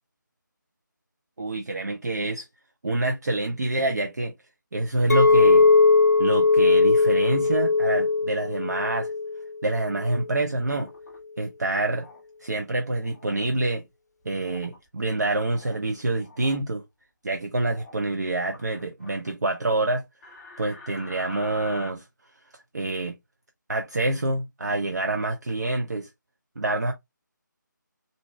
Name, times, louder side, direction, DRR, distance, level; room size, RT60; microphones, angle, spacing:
voice 1, 1.4-2.5 2.8-4.3 4.7-5.7 6.2-9.1 9.6-10.9 11.4-12.1 12.4-13.8 14.2-16.8 17.2-20.0 20.6-22.1 22.7-23.1 23.7-26.1 26.6-26.9, right 2 dB, 60° right, 0.8 m, -26 dB
Chink clink, 5.1-9.4 9.8-10.2, left 4 dB, 55° left, 0.6 m, -19 dB
sound 1, 10.6-11.2 11.9-12.2 13.0-13.5 14.4-14.8 15.2-15.8 16.2-16.6 17.6-18.0 18.4-19.3 20.2-21.9, left 2 dB, 5° left, 0.5 m, -46 dB
4.0 x 2.8 x 3.3 m
figure-of-eight pair, 155°, 11 cm